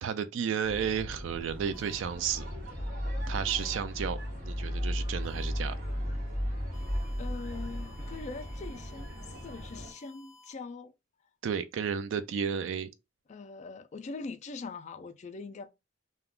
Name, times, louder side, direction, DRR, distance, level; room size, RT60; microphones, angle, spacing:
voice 1, 0.0-2.5 3.3-4.2 4.4-5.7 11.4-12.9, right 7 dB, 70° right, 0.3 m, -32 dB
sound 1, 0.6-9.9, equal, 45° right, 1.3 m, -35 dB
sound 2, 1.7-2.0 3.5-3.7 5.2-5.5 6.7-10.5, left 2 dB, 5° right, 0.7 m, -56 dB
voice 2, 7.2-10.9 13.3-15.7, left 4 dB, 35° left, 0.3 m, -42 dB
2.4 x 2.2 x 3.5 m
head